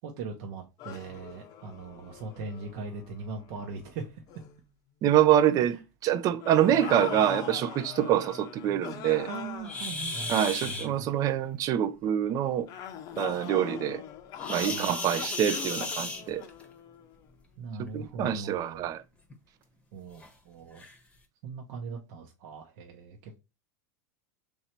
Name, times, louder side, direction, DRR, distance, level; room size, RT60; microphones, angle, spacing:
voice 1, 0.0-4.2 5.7-5.8 9.3-10.3 10.6-11.1 14.7-15.2 17.6-18.9 19.9-20.8 21.4-23.4, right 4 dB, 60° right, 0.8 m, -40 dB
sound 1, 0.8-3.9 4.3-4.6 6.4-11.0 12.7-17.2, left 9 dB, 45° left, 0.6 m, -42 dB
voice 2, 5.0-5.8 6.0-9.3 10.3-12.7 13.2-14.0 14.5-16.4 17.9-19.0, right 10 dB, 40° right, 0.5 m, -25 dB
sound 2, 9.6-10.9 14.4-16.6 17.9-18.1 18.6-18.7 19.3-19.4 20.2-20.3 20.8-21.0, left 2 dB, 10° left, 0.9 m, -35 dB
3.2 x 2.7 x 4.3 m
hypercardioid pair, 110°, 9 cm